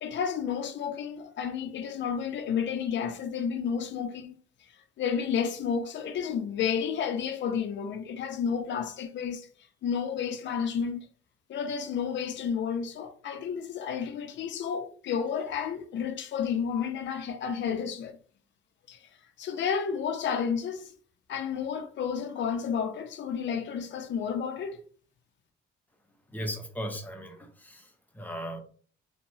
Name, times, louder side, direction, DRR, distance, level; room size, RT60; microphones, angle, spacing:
voice 1, 0.0-4.4 5.0-9.5 9.8-11.1 11.5-18.2 18.9-19.0 19.4-20.9 21.3-24.8, left 7 dB, 65° left, 0.6 m, -31 dB
voice 2, 26.3-28.6, equal, 10° left, 0.7 m, -37 dB
2.8 x 2.2 x 2.7 m
cardioid pair, 90°, 20 cm